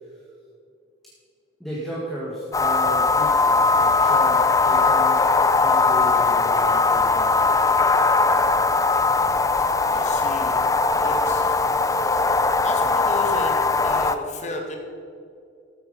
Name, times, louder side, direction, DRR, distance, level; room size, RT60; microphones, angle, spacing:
voice 1, 1.6-5.2 5.5-7.6, right 1 dB, ahead, -7 dB, 2.0 m, -34 dB
sound 1, 2.5-14.2, left 4 dB, 15° left, 0.5 m, -20 dB
voice 2, 9.9-10.6 10.9-11.6 11.8-12.1 12.6-14.8, left 1 dB, 35° left, 2 dB, 2.0 m, -33 dB
13.5 x 9.2 x 5.4 m, 2.5 s
head